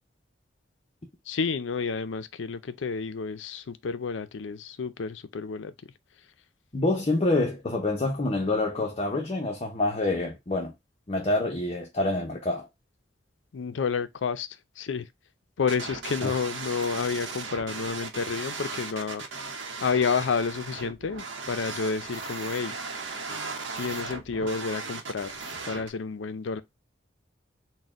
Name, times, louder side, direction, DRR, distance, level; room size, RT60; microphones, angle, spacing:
voice 1, 1.3-5.7 13.5-14.5 14.8-15.1 15.6-19.2 19.8-22.7 23.7-25.3 25.7-26.6, left 5 dB, 75° left, 0.5 m, -30 dB
voice 2, 6.7-10.7 11.1-12.7 16.2-16.3, left 2 dB, 35° left, 0.7 m, -27 dB
sound 1, 15.7-25.9, right 4 dB, 75° right, 0.8 m, -37 dB
4.1 x 2.2 x 3.5 m
head